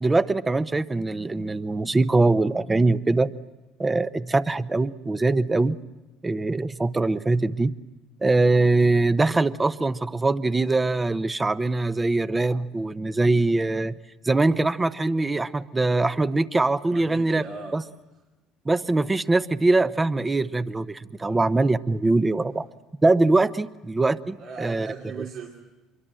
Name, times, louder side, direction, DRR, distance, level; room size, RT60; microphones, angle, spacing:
voice 1, 0.0-3.3 3.8-5.8 6.2-7.7 8.2-13.9 14.2-17.4 17.7-17.8 18.6-22.7 23.0-24.9, right 2 dB, 20° right, 14 dB, 0.9 m, -22 dB
voice 2, 16.9-17.8 21.2-21.4 24.4-25.6, right 5 dB, 65° right, -1 dB, 2.8 m, -39 dB
25.5 x 23.0 x 7.6 m, 1.1 s
supercardioid pair, 85°, 0 cm